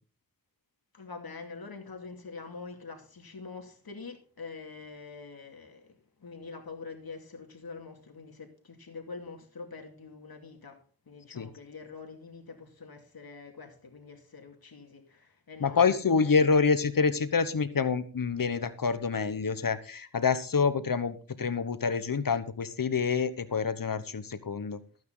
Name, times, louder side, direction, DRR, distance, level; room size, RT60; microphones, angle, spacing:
voice 1, 0.9-10.8 11.1-16.6, left 4 dB, 80° left, 2.5 m, -45 dB
voice 2, 15.6-24.8, left 5 dB, 65° left, 1.2 m, -27 dB
14.5 x 9.4 x 3.9 m
wide cardioid pair, 55°, 36 cm